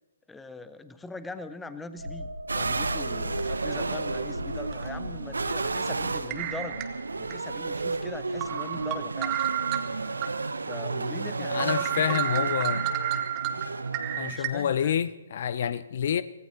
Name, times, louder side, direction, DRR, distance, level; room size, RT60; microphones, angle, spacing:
voice 1, 0.3-2.3 2.5-6.8 7.2-9.4 10.7-12.6 14.3-15.0, left 3 dB, 5° left, 0.8 m, -41 dB
sound 1, 2.0-9.4 9.8-10.0, left 1 dB, 90° right, 1.5 m, -40 dB
sound 2, 2.5-14.3, right 3 dB, 70° right, 0.8 m, -32 dB
sound 3, 3.4-3.5 4.7-4.8 6.3-7.3 7.8-7.9 8.4-10.3 10.7-10.8 11.2-11.3 11.6-14.5, right 11 dB, 25° right, 1.2 m, -31 dB
voice 2, 11.5-12.8 14.1-16.2, left 9 dB, 45° left, 0.5 m, -28 dB
24.5 x 17.5 x 2.9 m
figure-of-eight pair, 135°, 0 cm